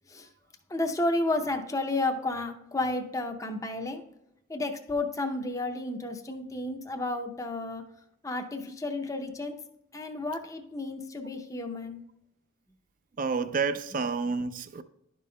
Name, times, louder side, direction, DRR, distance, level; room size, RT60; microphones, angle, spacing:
voice 1, 0.7-4.0 4.5-7.8 8.2-9.6 9.9-12.0, left 2 dB, 15° left, 0.6 m, -32 dB
voice 2, 13.2-14.8, right 4 dB, 40° right, 0.4 m, -29 dB
11.5 x 5.3 x 2.2 m
head